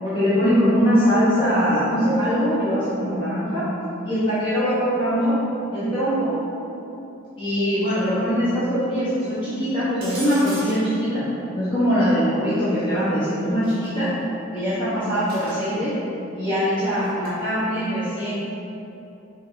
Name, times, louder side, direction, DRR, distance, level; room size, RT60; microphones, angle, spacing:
voice 1, 0.0-3.6 4.0-5.4 5.7-6.3 7.4-11.2 11.5-14.1 14.5-15.9 16.3-18.3, equal, 20° left, -14 dB, 1.5 m, -22 dB
sound 1, 10.0-11.0 13.6-13.9 15.3-15.7 17.0-17.3, right 2 dB, 45° right, 1.5 m, -37 dB
5.7 x 4.0 x 4.1 m, 2.9 s
head